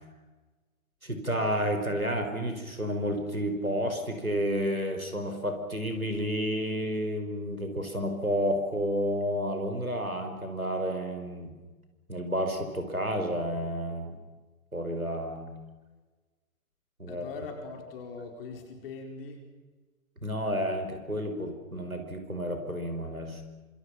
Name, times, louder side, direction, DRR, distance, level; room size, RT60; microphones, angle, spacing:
voice 1, 1.0-11.5 12.1-14.2 14.7-15.5 17.0-17.2 20.2-23.4, equal, 90° right, 6 dB, 5.1 m, -31 dB
voice 2, 17.1-19.4, left 4 dB, 40° left, 3 dB, 4.9 m, -41 dB
28.0 x 26.0 x 6.1 m, 1.3 s
figure-of-eight pair, 120°, 41 cm